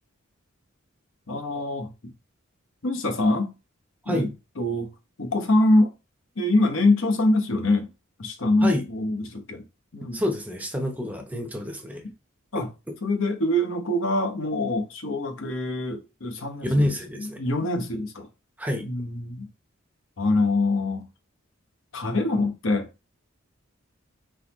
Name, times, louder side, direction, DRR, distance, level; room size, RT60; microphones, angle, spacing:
voice 1, 1.3-2.1 2.8-3.5 4.1-4.3 4.6-4.9 5.2-5.9 6.4-7.9 8.2-9.6 9.9-10.2 12.5-12.7 13.0-16.9 17.2-18.3 18.8-19.5 20.2-21.1 21.9-22.9, left 2 dB, 65° left, 0.9 m, -24 dB
voice 2, 10.1-12.1 16.6-17.4 18.6-18.9, left 1 dB, 10° right, 0.7 m, -27 dB
4.0 x 3.9 x 3.0 m
head